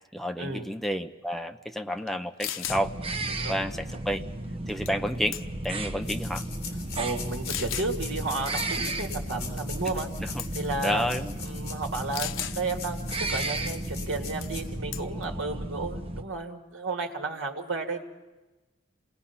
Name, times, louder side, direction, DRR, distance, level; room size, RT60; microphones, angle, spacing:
voice 1, 0.1-2.9 3.5-4.2 4.7-5.4 5.6-6.4 10.2-10.4 10.8-11.3, equal, ahead, 6 dB, 0.8 m, -30 dB
sound 1, 2.1-2.2 2.4-2.8 4.9-5.1 5.3-5.7 6.4-6.5 7.5-7.9 9.9-10.1 10.4-10.7 12.1-12.6 14.4-14.6 14.9-15.2, left 11 dB, 85° left, 0.9 m, -34 dB
sound 2, 2.7-16.2, right 1 dB, 30° right, 1.0 m, -34 dB
voice 2, 3.3-3.6 7.0-10.1 10.5-11.0 11.4-18.0, right 3 dB, 75° right, 2 dB, 2.1 m, -33 dB
sound 3, 6.0-14.6, left 7 dB, 55° left, 3.5 m, -42 dB
27.5 x 19.0 x 5.8 m, 1.1 s
head